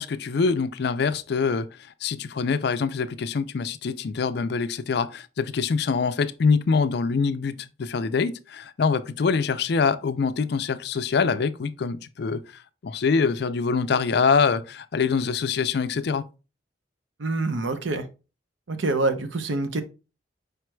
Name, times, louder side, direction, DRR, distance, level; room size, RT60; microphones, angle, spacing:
voice 1, 0.0-1.7 2.0-16.2, left 5 dB, 60° left, 0.4 m, -24 dB
voice 2, 17.2-18.0 18.7-19.8, right 2 dB, 85° right, 0.7 m, -26 dB
5.0 x 4.6 x 2.2 m
head